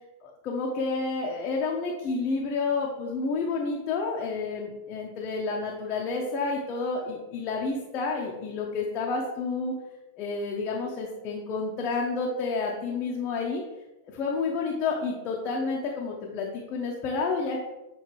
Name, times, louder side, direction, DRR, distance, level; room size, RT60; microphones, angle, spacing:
voice 1, 0.2-9.7 10.2-13.6 14.1-17.7, left 4 dB, 35° left, -2 dB, 0.9 m, -30 dB
7.9 x 3.9 x 3.2 m, 1.0 s
figure-of-eight pair, 90°, 0 cm